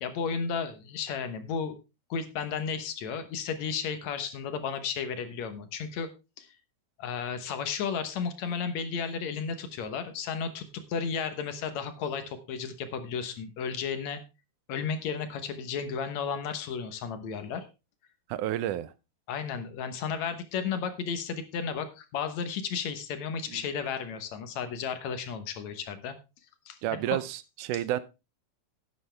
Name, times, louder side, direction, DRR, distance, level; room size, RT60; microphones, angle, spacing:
voice 1, 0.0-1.8 2.1-6.1 6.4-6.5 7.0-14.2 14.7-17.7 19.3-26.1 26.7-27.2, left 6 dB, 65° left, 2.3 m, -33 dB
voice 2, 18.3-18.9 23.5-23.6 26.8-28.0, right 13 dB, 85° right, 2.2 m, -30 dB
11.5 x 9.8 x 3.4 m
omnidirectional pair, 3.5 m